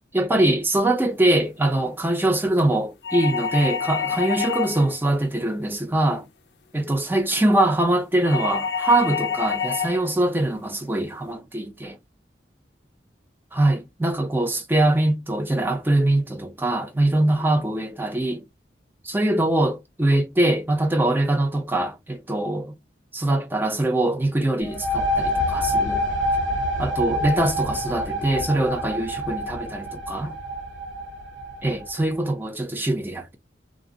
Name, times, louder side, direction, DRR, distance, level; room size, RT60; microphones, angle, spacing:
voice 1, 0.1-6.2 6.7-12.0 13.5-18.4 19.0-22.8 23.1-26.0 26.8-30.4 31.6-33.4, right 1 dB, 10° right, 0.4 m, -23 dB
sound 1, 3.0-5.0 8.2-10.0, left 6 dB, 65° left, 0.4 m, -27 dB
sound 2, 24.6-32.0, equal, 85° right, 0.9 m, -26 dB
2.5 x 2.0 x 3.8 m
head